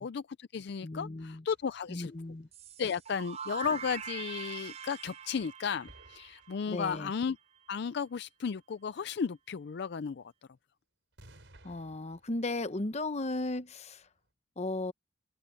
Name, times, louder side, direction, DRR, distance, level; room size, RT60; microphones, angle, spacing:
voice 1, 0.0-2.1 2.8-7.4 7.7-10.3, left 6 dB, 60° left, 0.4 m, -34 dB
voice 2, 0.8-1.4 1.9-2.5 6.7-7.1 11.6-14.1 14.6-14.9, left 2 dB, 35° left, 0.9 m, -36 dB
sound 1, 1.5-5.5 5.8-7.0 11.1-14.2, right 1 dB, 75° right, 4.8 m, -61 dB
sound 2, 2.5-7.3, right 7 dB, 35° right, 0.5 m, -44 dB
open air
head